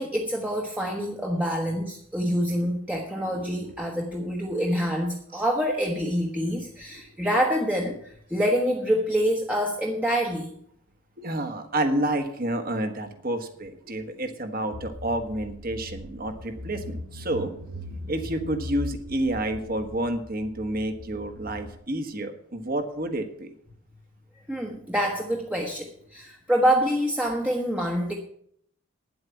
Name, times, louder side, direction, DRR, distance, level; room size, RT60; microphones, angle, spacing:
voice 1, 0.0-10.5 24.5-28.1, equal, 5° right, -1 dB, 1.1 m, -26 dB
voice 2, 3.2-3.8 6.9-7.0 11.2-17.5 18.1-23.5, right 1 dB, 40° right, 7 dB, 1.5 m, -29 dB
Car / Engine, 14.7-21.7, left 1 dB, 65° right, 2.5 m, -40 dB
9.9 x 7.8 x 9.1 m, 0.67 s
head